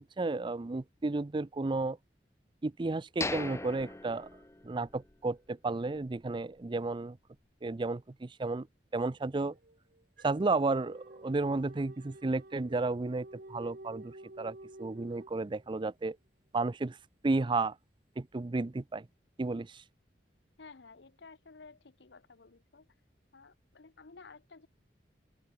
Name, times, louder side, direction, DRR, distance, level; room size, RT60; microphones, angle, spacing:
voice 1, 0.0-2.0 2.6-4.3 4.6-7.2 7.6-8.7 8.9-9.5 10.2-16.2 16.5-17.0 17.2-17.7 18.2-19.1 19.4-19.8, right 3 dB, 30° right, 0.5 m, -32 dB
sound 1, 3.2-5.1 5.5-5.6 6.1-6.3, left 3 dB, 15° left, 0.7 m, -39 dB
sound 2, 9.5-15.9, right 1 dB, 60° right, 2.2 m, -51 dB
voice 2, 20.6-22.9 23.3-24.7, left 4 dB, 80° left, 0.9 m, -54 dB
head